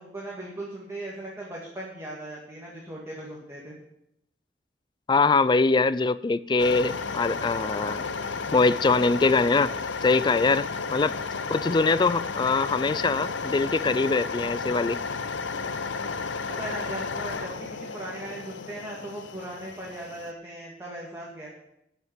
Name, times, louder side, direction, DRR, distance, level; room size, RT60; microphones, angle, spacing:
voice 1, 0.0-3.7 15.9-16.1 16.6-21.5, right 1 dB, 15° right, -4 dB, 2.1 m, -38 dB
voice 2, 5.1-8.0 8.5-9.7 10.0-11.1 11.5-15.0, left 3 dB, 25° left, 16 dB, 0.3 m, -23 dB
sound 1, 6.6-20.3, left 4 dB, 85° left, 0.7 m, -33 dB
12.5 x 5.7 x 9.0 m, 0.80 s
head